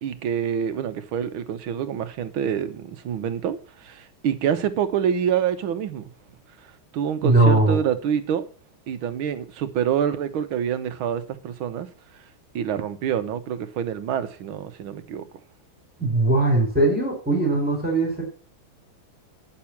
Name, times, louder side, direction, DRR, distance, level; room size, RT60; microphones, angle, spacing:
voice 1, 0.0-6.1 6.9-8.5 8.9-11.9 12.6-15.3, right 8 dB, 80° right, 1.7 m, -26 dB
voice 2, 7.2-7.8 16.0-18.2, right 2 dB, 5° right, 3.9 m, -20 dB
10.0 x 6.7 x 5.9 m
omnidirectional pair, 2.3 m